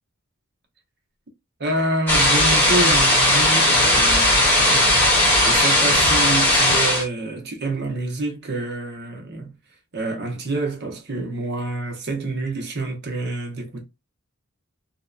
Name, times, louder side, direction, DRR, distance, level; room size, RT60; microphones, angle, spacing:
voice 1, 1.6-9.6 9.9-13.9, right 2 dB, 50° right, 0.8 m, -27 dB
sound 1, 2.1-7.0, left 1 dB, 10° left, 1.0 m, -17 dB
2.7 x 2.1 x 2.3 m
head